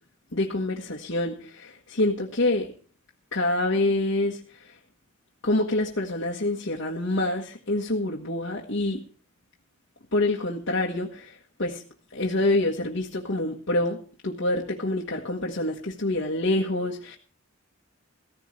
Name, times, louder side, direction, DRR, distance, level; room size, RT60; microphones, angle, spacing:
voice 1, 0.3-2.7 3.3-4.6 5.4-9.0 10.1-11.8 12.1-17.2, left 2 dB, 65° left, -3 dB, 1.5 m, -26 dB
16.5 x 14.5 x 3.3 m, 0.41 s
head